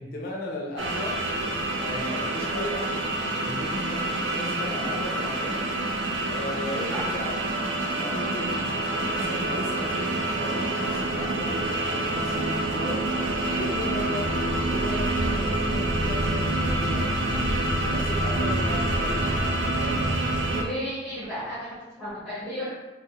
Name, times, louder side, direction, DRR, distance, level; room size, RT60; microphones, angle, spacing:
voice 1, 0.0-1.4 1.7-5.7 6.3-14.4 14.7-17.5 17.8-20.2, left 1 dB, 50° left, -1 dB, 0.3 m, -36 dB
sound 1, 0.8-20.6, right 2 dB, 80° right, 0.4 m, -27 dB
voice 2, 6.7-7.1 20.5-21.7 22.0-22.6, equal, ahead, -12 dB, 0.6 m, -33 dB
2.2 x 2.0 x 2.7 m, 1.1 s
head